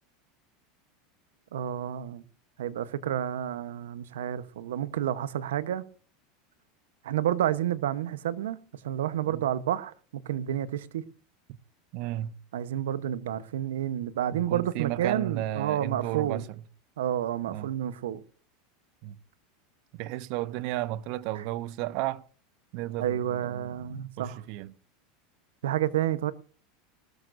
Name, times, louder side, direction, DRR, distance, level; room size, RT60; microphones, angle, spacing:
voice 1, 1.5-2.2 2.6-5.8 7.0-8.6 8.8-9.9 10.3-11.0 12.5-16.4 17.0-18.2 23.0-24.4 25.6-26.3, right 11 dB, 85° right, 1.0 m, -30 dB
voice 2, 11.9-12.4 14.3-16.6 17.5-17.7 19.0-19.2 19.9-22.2 22.7-24.8, right 15 dB, 60° right, 0.8 m, -34 dB
19.5 x 13.5 x 2.6 m
supercardioid pair, 110°, 0 cm